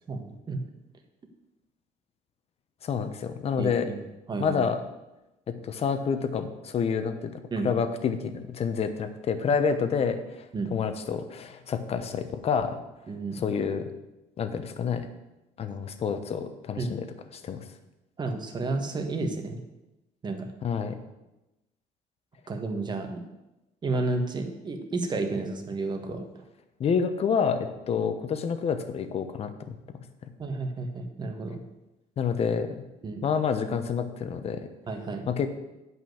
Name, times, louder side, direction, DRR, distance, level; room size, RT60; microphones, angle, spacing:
voice 1, 0.1-0.6 3.6-4.0 4.3-4.6 7.5-7.7 10.5-10.7 13.1-13.4 16.8-16.9 18.2-19.6 20.2-20.5 22.5-23.2 23.8-26.4 30.4-31.6 33.0-33.2 34.9-35.2, right 3 dB, 30° right, 5 dB, 1.4 m, -31 dB
voice 2, 2.8-3.9 4.4-4.8 5.5-7.3 7.6-10.2 10.7-12.8 13.3-13.9 14.4-15.1 15.6-17.0 17.4-17.6 20.6-21.0 26.8-29.8 32.2-32.8 33.2-34.6 35.3-35.5, left 6 dB, 45° left, 9 dB, 1.0 m, -28 dB
8.7 x 5.5 x 7.8 m, 0.98 s
cardioid pair, 115°, 14 cm